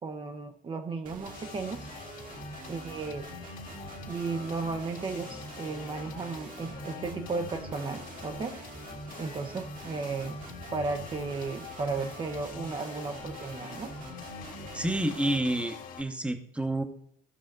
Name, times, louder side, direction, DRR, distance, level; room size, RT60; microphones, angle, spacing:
voice 1, 0.0-1.9 2.7-3.2 4.1-8.6 9.2-10.4 10.7-13.9, right 4 dB, 30° right, 5 dB, 0.8 m, -35 dB
sound 1, 1.1-15.4, right 3 dB, 55° right, 1.6 m, -45 dB
sound 2, 1.3-16.0, left 7 dB, 55° left, 1.9 m, -45 dB
voice 2, 14.7-16.8, right 1 dB, 5° right, 8 dB, 1.0 m, -29 dB
14.0 x 5.7 x 3.9 m, 0.66 s
cardioid pair, 110°, 17 cm